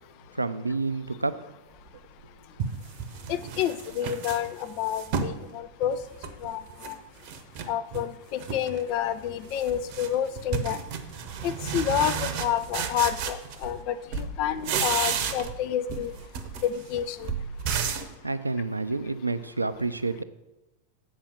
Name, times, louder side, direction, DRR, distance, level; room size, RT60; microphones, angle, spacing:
voice 1, 0.3-1.4 18.2-20.2, right 3 dB, 80° right, 13 dB, 0.4 m, -29 dB
sound 1, 1.9-2.0 2.6-5.4 5.8-6.9 7.2-8.1 8.4-8.8 9.1-13.9 14.1-15.6 15.9-18.1, right 6 dB, 45° right, 0.8 m, -32 dB
voice 2, 3.3-6.0 6.4-7.0 7.7-10.8 11.4-16.1 16.6-17.3, left 10 dB, 45° left, 12 dB, 0.5 m, -29 dB
7.3 x 4.8 x 7.2 m, 1.0 s
figure-of-eight pair, 90°, 0 cm